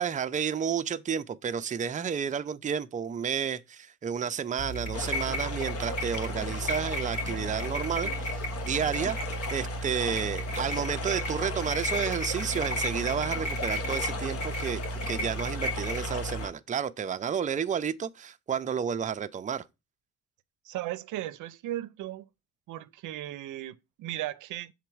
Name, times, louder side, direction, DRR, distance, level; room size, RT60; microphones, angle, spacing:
voice 1, 0.0-19.6, right 7 dB, 25° right, 0.5 m, -31 dB
sound 1, 4.6-16.4, equal, 75° left, 2.5 m, -33 dB
sound 2, 4.9-16.5, left 3 dB, 50° left, 1.3 m, -38 dB
voice 2, 20.6-22.3 22.7-24.7, right 14 dB, 80° right, 0.6 m, -36 dB
6.6 x 3.9 x 4.6 m
cardioid pair, 90°, 30 cm